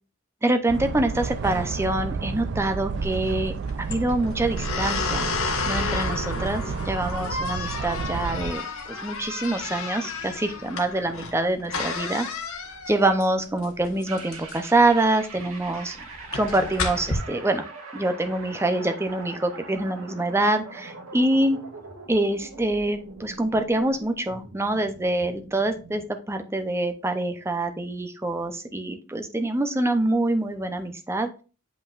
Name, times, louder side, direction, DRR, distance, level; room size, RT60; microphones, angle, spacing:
voice 1, 0.4-5.3 5.7-8.6 8.9-12.3 12.9-16.0 16.3-17.6 17.9-21.6 22.1-31.3, right 2 dB, 10° right, 7 dB, 0.6 m, -25 dB
sound 1, 0.7-8.5, right 5 dB, 55° right, 0.4 m, -31 dB
sound 2, 2.9-17.1, left 4 dB, 80° left, 1.2 m, -32 dB
sound 3, 14.1-26.1, right 3 dB, 85° right, 2.0 m, -42 dB
7.5 x 5.5 x 2.4 m, 0.34 s
head